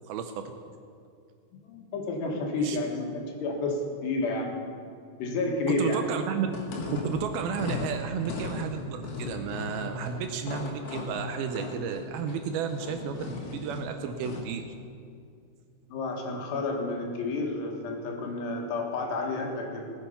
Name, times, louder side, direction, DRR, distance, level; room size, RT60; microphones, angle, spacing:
voice 1, 0.1-0.4 2.6-2.8 5.7-6.6 6.9-14.6, right 7 dB, 75° right, 6 dB, 2.4 m, -32 dB
voice 2, 1.7-4.6 5.2-6.0 15.9-19.9, left 2 dB, 85° left, 1 dB, 3.8 m, -30 dB
sound 1, 6.5-14.6, left 4 dB, 70° left, 3.4 m, -37 dB
19.5 x 8.4 x 5.7 m, 2.4 s
omnidirectional pair, 4.8 m